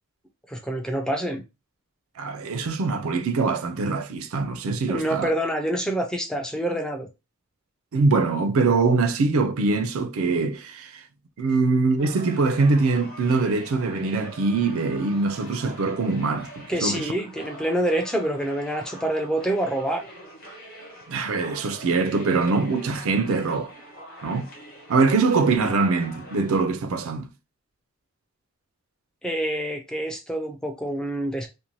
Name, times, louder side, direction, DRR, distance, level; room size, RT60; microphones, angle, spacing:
voice 1, 0.5-1.4 4.9-7.1 16.7-20.0 29.2-31.5, right 1 dB, 5° left, 0.4 m, -26 dB
voice 2, 2.2-5.3 7.9-11.0 11.4-17.1 21.1-23.7 24.2-24.5 24.9-27.3, right 3 dB, 70° right, 0.4 m, -23 dB
sound 1, 12.0-26.5, equal, 40° left, 0.9 m, -44 dB
2.6 x 2.1 x 2.9 m
head